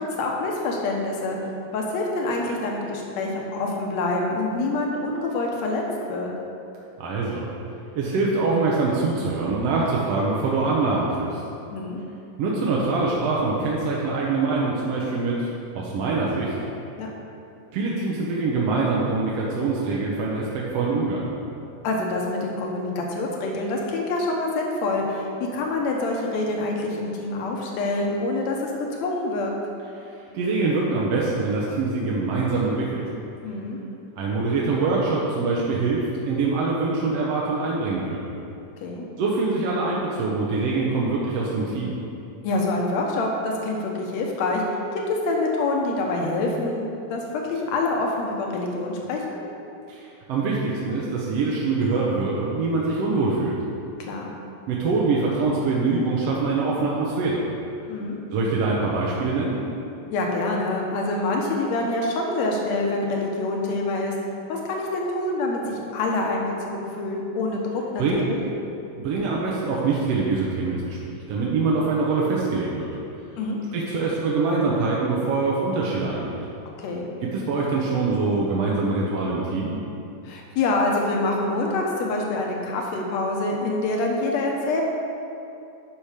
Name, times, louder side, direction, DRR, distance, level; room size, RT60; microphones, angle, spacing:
voice 1, 0.0-1.4 1.7-5.8 6.1-6.3 11.7-12.0 17.0-17.1 21.8-28.7 29.0-29.5 33.4-33.8 38.8-39.1 42.4-44.6 45.1-47.2 47.5-49.4 54.0-54.3 57.9-58.2 60.1-64.1 64.5-68.4 73.4-73.6 76.8-77.1 80.2-84.8, left 2 dB, 70° left, 0 dB, 2.3 m, -26 dB
voice 2, 7.0-7.5 8.0-11.4 12.4-15.4 15.8-16.5 17.7-21.3 30.3-33.0 34.2-38.2 39.2-41.9 49.9-50.0 50.3-53.6 54.7-57.4 58.3-59.6 68.0-68.2 69.0-71.0 71.3-72.9 73.7-76.4 77.3-79.8, right 3 dB, 65° right, -4 dB, 1.9 m, -24 dB
10.0 x 6.2 x 5.0 m, 2.7 s
omnidirectional pair, 3.3 m